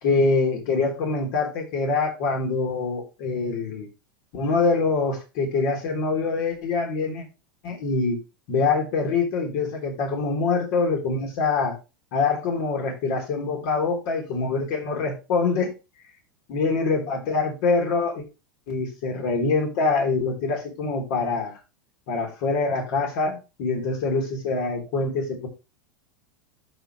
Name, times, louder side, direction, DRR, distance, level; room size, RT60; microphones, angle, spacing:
voice 1, 0.0-3.9 4.3-7.3 7.6-8.2 8.5-11.8 12.1-15.7 16.5-18.2 18.7-21.6 22.1-25.5, left 4 dB, 55° left, 3.6 m, -24 dB
12.5 x 5.3 x 3.1 m
hypercardioid pair, 95°, 12 cm